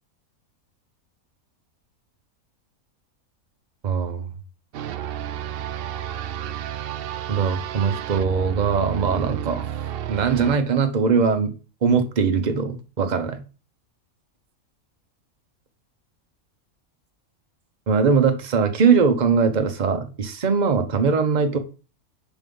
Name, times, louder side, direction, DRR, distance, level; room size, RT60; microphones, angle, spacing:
voice 1, 3.8-4.3 7.3-9.7 10.1-11.5 11.8-13.4 17.9-21.6, right 5 dB, 35° right, 7 dB, 0.9 m, -21 dB
sound 1, 4.7-10.6, right 10 dB, 75° right, 0.5 m, -31 dB
5.5 x 4.7 x 5.4 m, 0.34 s
omnidirectional pair, 1.5 m